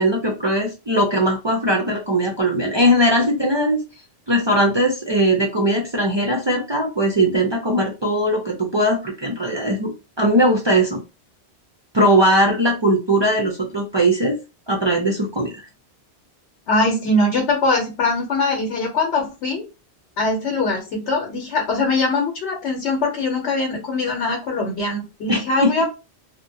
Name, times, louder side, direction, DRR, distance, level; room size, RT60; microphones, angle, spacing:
voice 1, 0.0-3.8 4.3-9.9 10.2-11.0 11.9-14.3 14.7-15.5 25.3-25.7, equal, 50° right, -1 dB, 0.3 m, -19 dB
voice 2, 16.7-19.6 20.2-25.9, left 2 dB, 90° left, 0 dB, 1.0 m, -22 dB
2.7 x 2.1 x 2.6 m, 0.29 s
omnidirectional pair, 1.1 m